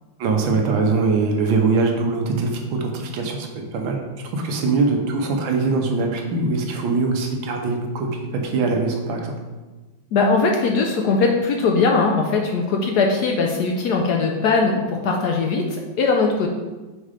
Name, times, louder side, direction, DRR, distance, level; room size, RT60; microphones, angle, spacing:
voice 1, 0.2-8.1 8.4-9.3, right 3 dB, 85° right, 2 dB, 1.6 m, -22 dB
voice 2, 10.1-16.5, left 4 dB, 70° left, 2 dB, 1.0 m, -20 dB
5.3 x 3.7 x 4.9 m, 1.2 s
omnidirectional pair, 2.1 m